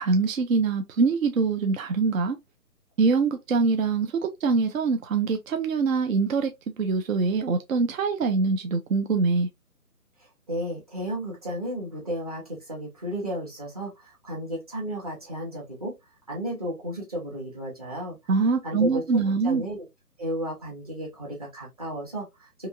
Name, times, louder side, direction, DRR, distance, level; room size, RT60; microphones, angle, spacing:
voice 1, 0.0-2.4 3.0-6.5 6.8-9.5 18.3-19.6, right 4 dB, 60° right, 0.5 m, -24 dB
voice 2, 10.2-15.9 16.3-18.2 18.6-19.9 20.2-22.7, right 1 dB, 25° right, 0.7 m, -33 dB
2.8 x 2.4 x 2.3 m
hypercardioid pair, 165°, 46 cm